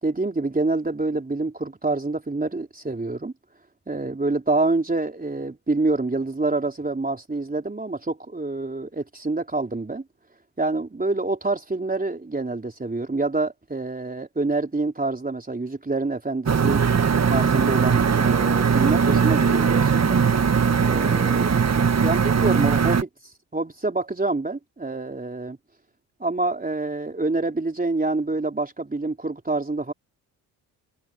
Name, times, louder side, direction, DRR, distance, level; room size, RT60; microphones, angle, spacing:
voice 1, 0.0-3.3 3.9-10.0 10.6-16.8 17.3-20.2 20.8-21.6 22.0-23.1 23.5-25.6 26.2-29.9, right 3 dB, 20° right, 3.8 m, -26 dB
sound 1, 16.5-23.0, right 6 dB, 35° right, 1.8 m, -20 dB
hypercardioid pair, 55°, 46 cm